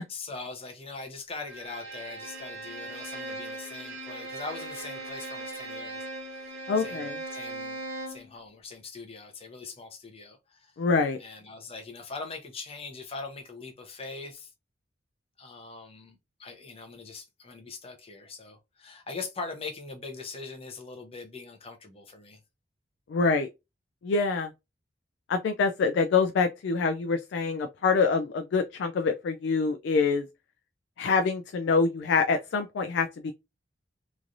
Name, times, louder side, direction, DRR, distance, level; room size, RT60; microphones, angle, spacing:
voice 1, 0.1-7.8 8.1-10.7 11.2-14.5 15.4-22.4, left 4 dB, 30° left, 0.7 m, -42 dB
Bowed string instrument, 1.5-8.3, right 2 dB, 65° right, 1.0 m, -39 dB
voice 2, 6.7-7.2 10.8-11.2 23.1-23.5 24.0-24.5 25.3-30.3 31.0-33.3, left 4 dB, 65° left, 0.3 m, -25 dB
3.1 x 2.5 x 2.5 m
head